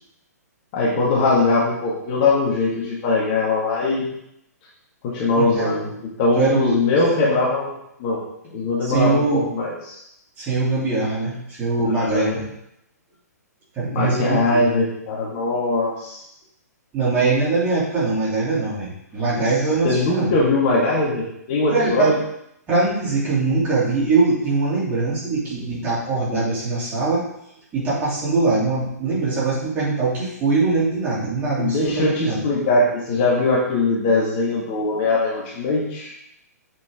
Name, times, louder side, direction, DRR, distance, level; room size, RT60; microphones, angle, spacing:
voice 1, 0.7-4.1 5.0-10.0 11.9-12.4 13.9-16.2 19.8-22.2 31.6-36.2, left 3 dB, 35° left, -4 dB, 1.9 m, -21 dB
voice 2, 5.3-5.7 6.4-6.8 8.8-9.5 10.4-12.4 13.7-14.6 16.9-20.3 21.7-22.1 22.7-27.2 27.7-32.4, right 3 dB, 20° right, -8 dB, 3.1 m, -22 dB
7.2 x 5.8 x 3.7 m, 0.79 s
figure-of-eight pair, 120°, 9 cm